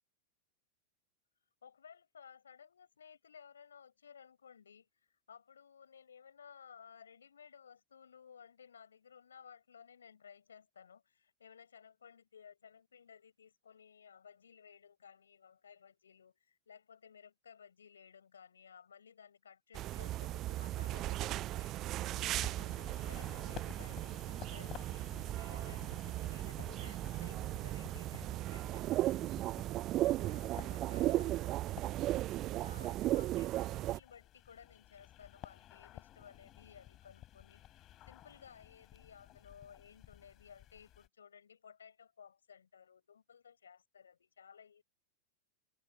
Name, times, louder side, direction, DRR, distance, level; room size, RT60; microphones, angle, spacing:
voice 1, 1.6-29.4 30.0-31.3 32.4-44.8, left 7 dB, 70° left, 7.6 m, -58 dB
sound 1, 19.7-34.0, right 15 dB, 35° right, 1.1 m, -36 dB
sound 2, 22.4-41.1, left 13 dB, 30° left, 6.2 m, -55 dB
figure-of-eight pair, 90°, 0 cm